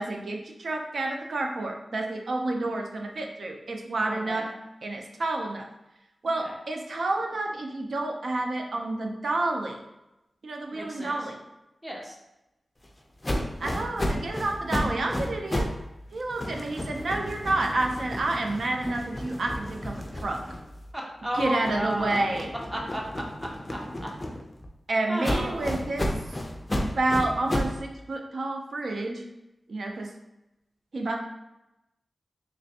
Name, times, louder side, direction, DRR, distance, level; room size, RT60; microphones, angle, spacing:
voice 1, 0.0-4.5 4.8-5.7 6.2-9.8 10.4-11.4 13.6-15.7 16.1-20.4 21.4-22.5 24.9-26.4 27.0-29.2 29.7-30.1 30.9-31.2, right 2 dB, 70° right, 2 dB, 0.5 m, -29 dB
voice 2, 4.1-4.4 6.4-6.5 10.7-11.2 11.8-12.1 20.9-22.4 22.7-24.1 25.1-25.7, equal, 15° right, -2 dB, 0.8 m, -33 dB
sound 1, 13.2-15.8 16.1-20.9 21.3-24.7 25.2-27.8, left 1 dB, 25° left, 0.4 m, -32 dB
3.3 x 3.0 x 2.8 m, 0.93 s
wide cardioid pair, 85°, 0 cm